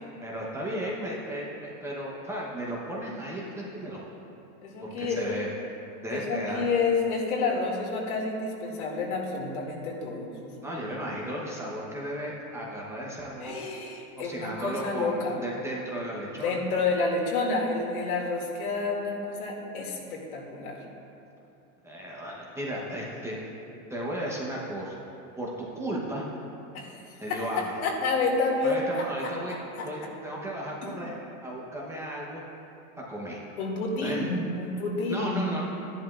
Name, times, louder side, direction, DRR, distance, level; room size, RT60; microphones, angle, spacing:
voice 1, 0.2-4.2 4.8-5.5 6.0-6.7 10.6-13.6 14.2-16.6 21.8-23.4 23.9-25.0 25.4-26.3 27.2-27.7 28.6-29.5 29.8-31.2 31.4-32.4 33.0-33.4 34.0-34.3 35.1-35.6, right 1 dB, 5° right, -4 dB, 0.8 m, -35 dB
voice 2, 4.6-5.4 6.1-10.7 13.4-15.4 16.3-20.8 26.7-26.9 27.3-29.3 29.8-29.9 30.8-30.9 33.6-35.4, left 3 dB, 80° left, -1 dB, 2.4 m, -29 dB
13.5 x 11.0 x 2.4 m, 2.8 s
supercardioid pair, 150°, 43 cm